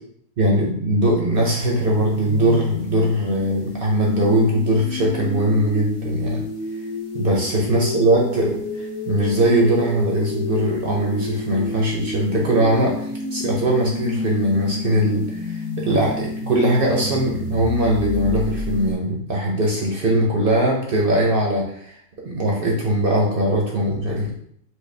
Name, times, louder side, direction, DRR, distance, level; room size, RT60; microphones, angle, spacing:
voice 1, 0.4-6.4 7.1-12.9 13.3-21.9 22.2-24.3, right 1 dB, 50° right, -2 dB, 0.7 m, -20 dB
sound 1, 1.3-18.9, left 2 dB, 55° left, 0.7 m, -30 dB
4.5 x 2.2 x 3.2 m, 0.67 s
omnidirectional pair, 1.5 m